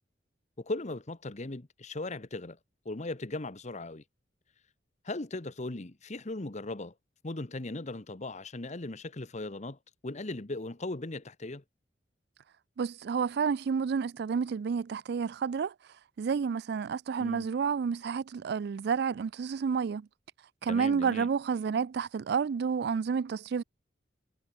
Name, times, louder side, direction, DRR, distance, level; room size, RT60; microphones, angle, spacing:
voice 1, 0.6-2.6 2.8-4.0 5.0-6.9 7.2-11.6 17.2-17.5 20.7-21.3, left 2 dB, 40° left, 1.2 m, -38 dB
voice 2, 12.8-15.7 16.2-20.1 20.6-23.6, right 6 dB, 65° right, 0.4 m, -30 dB
head